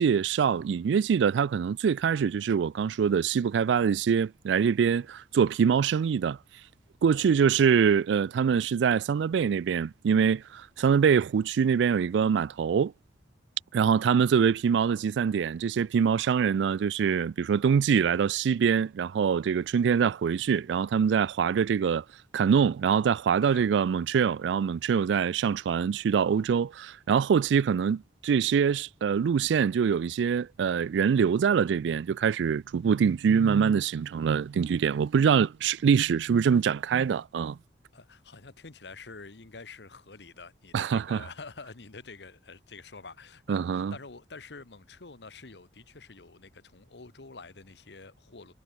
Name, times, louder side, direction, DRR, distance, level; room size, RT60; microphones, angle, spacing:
voice 1, 0.0-6.4 7.0-12.9 13.7-22.0 22.3-37.6 40.7-41.2 43.5-43.9, right 7 dB, 85° right, 0.3 m, -24 dB
voice 2, 7.1-7.6 13.7-14.1 23.4-23.7 37.9-48.5, left 4 dB, 70° left, 1.3 m, -47 dB
head